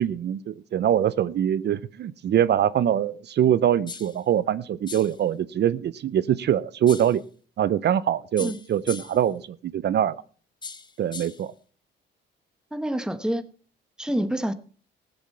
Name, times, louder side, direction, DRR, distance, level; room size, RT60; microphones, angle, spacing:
voice 1, 0.0-7.2 7.6-10.2 11.0-11.5, right 10 dB, 60° right, 0.6 m, -23 dB
sound 1, 3.9-4.2 4.9-5.2 6.9-7.2 8.4-9.3 10.6-11.5, left 5 dB, 20° left, 1.1 m, -39 dB
voice 2, 12.7-13.4 14.0-14.5, equal, 5° right, 1.1 m, -27 dB
15.5 x 8.0 x 5.6 m
cardioid pair, 90°, 20 cm